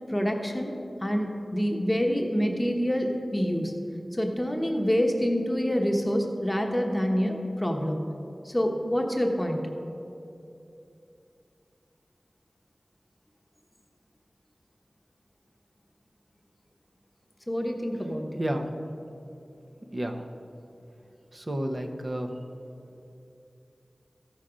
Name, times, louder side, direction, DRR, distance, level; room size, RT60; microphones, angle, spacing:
voice 1, 0.1-3.7 4.1-8.0 8.4-9.6 17.5-18.4, equal, 10° left, 1 dB, 1.0 m, -27 dB
voice 2, 18.4-18.7 19.9-20.2 21.3-22.3, right 1 dB, 40° right, 4 dB, 0.8 m, -31 dB
14.5 x 5.8 x 5.0 m, 2.7 s
wide cardioid pair, 75°, 0 cm